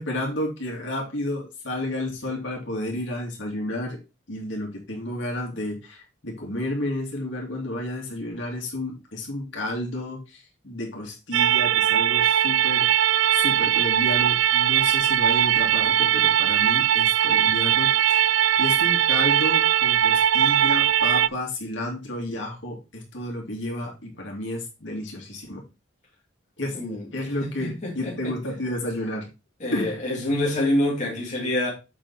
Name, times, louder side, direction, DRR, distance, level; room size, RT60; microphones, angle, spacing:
voice 1, 0.0-4.0 4.3-18.3 18.6-25.6 26.6-26.8 27.1-29.3 29.7-29.9, left 1 dB, 65° left, 2.5 m, -31 dB
sound 1, 11.3-21.3, right 10 dB, 70° right, 0.4 m, -20 dB
voice 2, 26.7-28.4 29.6-31.7, left 1 dB, 40° left, 2.2 m, -27 dB
7.2 x 5.1 x 4.1 m
head